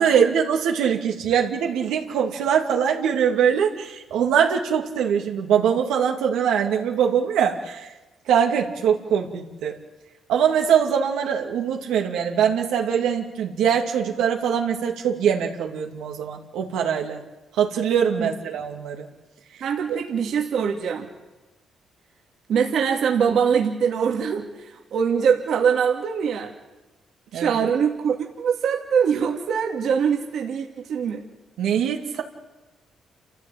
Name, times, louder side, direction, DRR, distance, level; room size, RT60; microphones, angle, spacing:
voice 1, 0.0-7.9 8.3-9.7 10.3-17.2 17.5-19.1 27.3-27.5 31.6-32.2, right 8 dB, 85° right, 1 dB, 2.7 m, -22 dB
voice 2, 19.6-21.1 22.5-26.5 27.3-31.2, right 7 dB, 70° right, 1 dB, 2.5 m, -23 dB
28.5 x 14.5 x 8.9 m, 1.1 s
cardioid pair, 90°, 0 cm